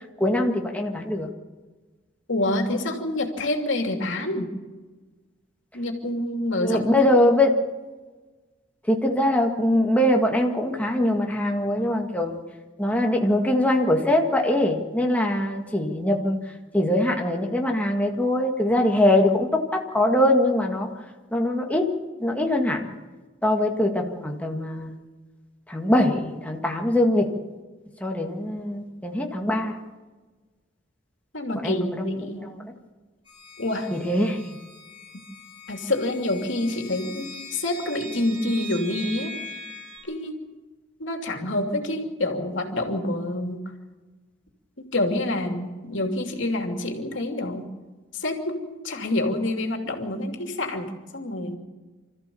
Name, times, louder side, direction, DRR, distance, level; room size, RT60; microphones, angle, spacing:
voice 1, 0.2-1.3 6.6-7.5 8.9-12.4 12.8-16.4 16.7-20.9 21.3-21.9 22.2-22.9 23.4-24.9 25.7-27.3 28.0-29.8 31.6-32.5 33.9-34.6, left 1 dB, 5° left, 1 dB, 1.9 m, -22 dB
voice 2, 2.3-4.5 5.7-6.9 7.2-7.3 31.3-32.5 33.6-33.9 35.1-35.2 35.7-39.3 40.1-40.4 41.0-43.6 44.8-47.7 48.1-51.6, left 1 dB, 70° left, 4 dB, 2.9 m, -27 dB
sound 1, 33.3-40.0, equal, 25° left, 7.1 m, -41 dB
26.0 x 14.5 x 7.1 m, 1.3 s
head